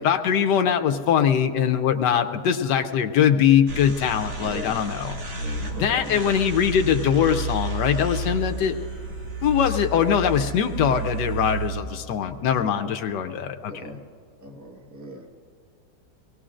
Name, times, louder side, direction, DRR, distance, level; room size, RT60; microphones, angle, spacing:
voice 1, 0.0-5.1 5.8-8.7 9.4-13.7, left 8 dB, 75° left, 7 dB, 1.3 m, -22 dB
sound 1, 3.7-11.7, right 2 dB, 85° right, 2.4 m, -31 dB
voice 2, 4.4-4.8 5.4-6.4 12.6-12.9 13.7-14.1 14.4-15.3, right 1 dB, 10° right, 1 dB, 1.2 m, -39 dB
24.0 x 18.5 x 2.5 m, 2.2 s
omnidirectional pair, 1.9 m